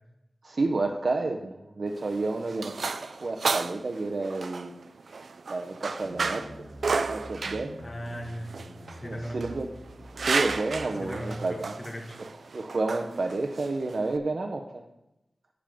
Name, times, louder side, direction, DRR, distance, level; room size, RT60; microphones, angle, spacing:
voice 1, 0.4-4.7 5.5-6.7 7.0-7.7 9.0-9.7 10.2-11.8 12.2-14.8, right 3 dB, 60° right, 3 dB, 0.8 m, -30 dB
sound 1, 1.9-14.2, right 4 dB, 80° right, 0.4 m, -33 dB
sound 2, 6.0-11.3, equal, 50° left, 3.3 m, -46 dB
voice 2, 7.8-8.5 8.9-9.4 11.0-12.2, equal, 30° left, 2 dB, 1.5 m, -37 dB
10.0 x 7.2 x 3.6 m, 0.91 s
wide cardioid pair, 85°, 0 cm